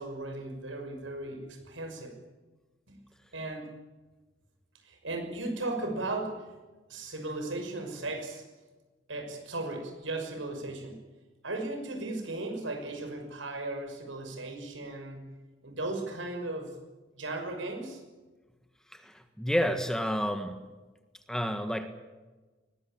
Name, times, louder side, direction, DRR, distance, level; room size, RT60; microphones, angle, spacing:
voice 1, 0.0-2.1 2.9-3.0 3.3-3.7 4.8-6.5 6.9-8.4 9.1-11.0 11.4-15.3 15.6-16.8 17.1-18.0, right 2 dB, 75° right, 4 dB, 6.1 m, -36 dB
voice 2, 18.9-20.6 21.3-21.9, equal, 5° left, 7 dB, 1.6 m, -30 dB
21.5 x 20.0 x 8.8 m, 1.2 s
head